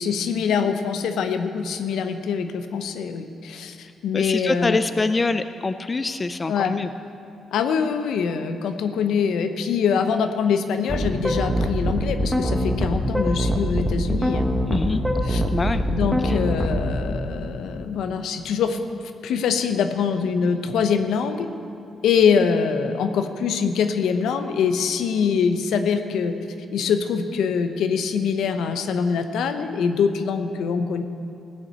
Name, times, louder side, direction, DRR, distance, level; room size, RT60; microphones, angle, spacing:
voice 1, 0.0-4.8 6.5-6.8 7.5-15.4 15.9-18.8 19.2-21.5 22.0-26.4 26.7-31.0, left 6 dB, 80° left, 8 dB, 0.8 m, -24 dB
voice 2, 4.1-6.9 14.7-15.0 15.5-15.8 16.3-16.4, left 3 dB, 30° left, 11 dB, 0.4 m, -24 dB
sound 1, 10.9-16.9, equal, 5° right, 1.4 m, -23 dB
15.5 x 6.1 x 8.0 m, 2.5 s
supercardioid pair, 70°, 0 cm